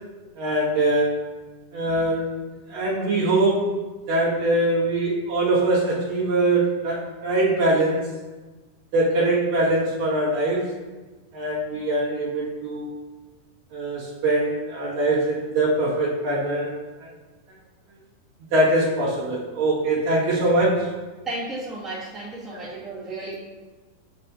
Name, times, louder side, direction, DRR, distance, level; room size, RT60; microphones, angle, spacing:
voice 1, 0.4-1.2 1.7-2.3 2.7-3.7 4.1-8.1 8.9-10.7 11.3-13.0 13.7-16.7 17.0-17.1 18.5-20.9 22.5-22.7, right 2 dB, 65° right, -8 dB, 3.7 m, -22 dB
voice 2, 1.8-2.2 21.2-23.3, right 2 dB, ahead, -9 dB, 1.0 m, -34 dB
10.0 x 5.5 x 2.8 m, 1.2 s
omnidirectional pair, 4.2 m